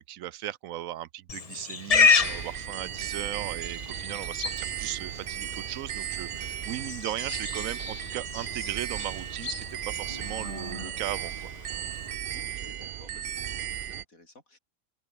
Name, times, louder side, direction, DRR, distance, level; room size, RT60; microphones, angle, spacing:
voice 1, 0.0-11.5, right 13 dB, 75° right, 1.0 m, -37 dB
Livestock farm animals working animals, 1.3-12.2, left 5 dB, 30° left, 0.8 m, -31 dB
sound 1, 1.9-6.2, right 2 dB, 40° right, 4.6 m, -52 dB
sound 2, 2.2-14.0, right 10 dB, 60° right, 0.6 m, -36 dB
voice 2, 12.3-14.6, left 2 dB, 75° left, 6.8 m, -54 dB
open air
omnidirectional pair, 1.5 m